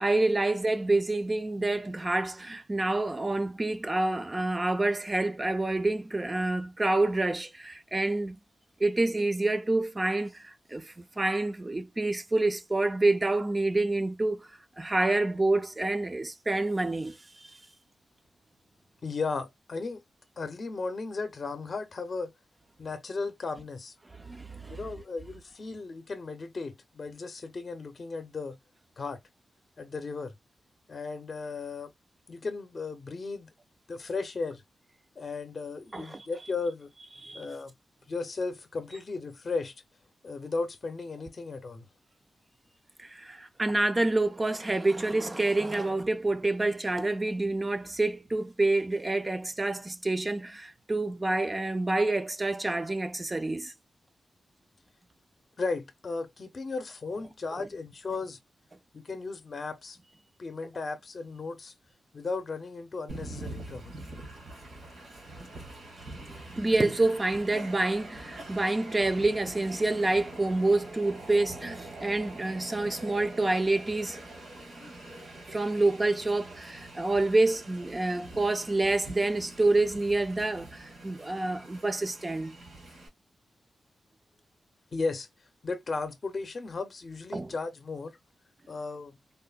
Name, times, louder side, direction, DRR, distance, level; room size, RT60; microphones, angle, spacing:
voice 1, 0.0-8.4 8.8-14.5 14.8-17.6 24.1-24.8 35.9-36.3 37.2-37.5 43.0-53.7 57.6-57.7 66.1-66.2 66.5-74.2 75.5-82.6 87.3-87.5, right 2 dB, 25° right, 0.4 m, -28 dB
voice 2, 19.0-20.0 20.4-22.3 22.8-23.9 24.7-28.6 29.0-29.2 29.8-30.3 30.9-31.9 32.3-33.5 33.9-34.6 35.2-36.9 37.3-37.7 38.1-39.7 40.2-41.9 55.6-58.4 58.9-60.0 60.4-61.7 62.1-63.9 84.9-85.3 85.6-88.2 88.7-89.2, left 4 dB, 45° left, 0.6 m, -35 dB
Train, 63.1-83.1, right 2 dB, 85° right, 1.6 m, -44 dB
3.6 x 2.1 x 2.2 m
wide cardioid pair, 100°, 0 cm